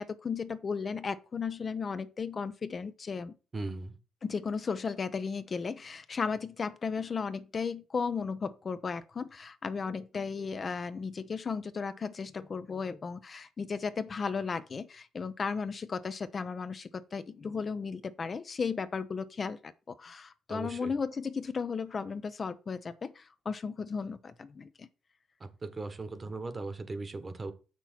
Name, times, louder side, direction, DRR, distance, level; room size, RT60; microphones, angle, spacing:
voice 1, 0.0-3.4 4.2-24.9, left 5 dB, 40° left, 0.6 m, -35 dB
voice 2, 3.5-4.0 20.5-20.9 25.4-27.5, right 3 dB, 30° right, 1.3 m, -38 dB
6.9 x 6.0 x 4.4 m
cardioid pair, 90°, 0 cm